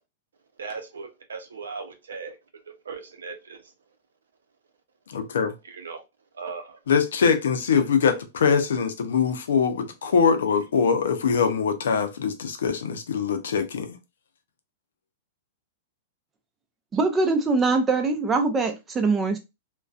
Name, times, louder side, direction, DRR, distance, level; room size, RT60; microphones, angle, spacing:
voice 1, 0.6-2.4 2.7-3.7 5.6-6.0 6.3-6.8 7.7-7.9, right 5 dB, 90° right, 0.6 m, -38 dB
voice 2, 5.1-5.5 6.9-13.9, left 6 dB, 80° left, 0.5 m, -23 dB
voice 3, 16.9-19.4, right 3 dB, 20° right, 0.5 m, -22 dB
2.5 x 2.2 x 2.3 m
hypercardioid pair, 120°, 0 cm